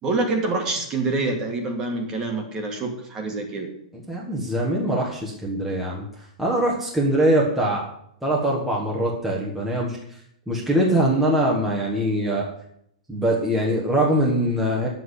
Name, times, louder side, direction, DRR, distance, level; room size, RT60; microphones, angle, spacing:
voice 1, 0.0-3.7, right 3 dB, 15° right, 4 dB, 1.7 m, -26 dB
voice 2, 4.1-6.0 6.4-7.9 8.2-10.0 10.5-12.5 13.1-14.9, right 1 dB, ahead, -5 dB, 1.4 m, -22 dB
10.0 x 7.7 x 8.2 m, 0.70 s
supercardioid pair, 175°, 4 cm